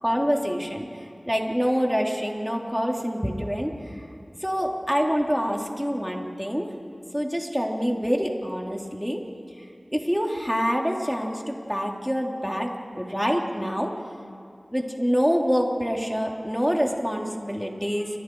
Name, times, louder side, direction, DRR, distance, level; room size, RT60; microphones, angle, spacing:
voice 1, 0.0-0.9 1.3-3.7 4.4-6.7 7.1-9.2 9.9-12.7 12.9-13.9 14.7-18.1, equal, ahead, 0 dB, 3.0 m, -26 dB
29.5 x 25.0 x 4.7 m, 2.3 s
wide cardioid pair, 45°, 0 cm